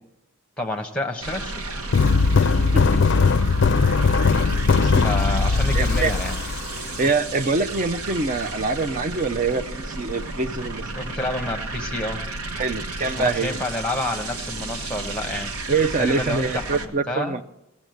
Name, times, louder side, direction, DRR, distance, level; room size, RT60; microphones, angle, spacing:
voice 1, 0.6-1.8 5.0-6.4 10.9-12.2 13.0-15.5 16.0-17.4, left 1 dB, 5° left, 4 dB, 1.1 m, -29 dB
sound 1, 1.2-16.9, right 2 dB, 90° right, 1.1 m, -33 dB
sound 2, 1.9-7.1, left 4 dB, 55° left, 0.4 m, -19 dB
voice 2, 4.4-5.0 5.7-6.1 7.0-10.8 12.6-13.6 15.7-17.4, right 3 dB, 35° right, 10 dB, 0.5 m, -25 dB
17.0 x 7.3 x 7.8 m, 0.90 s
head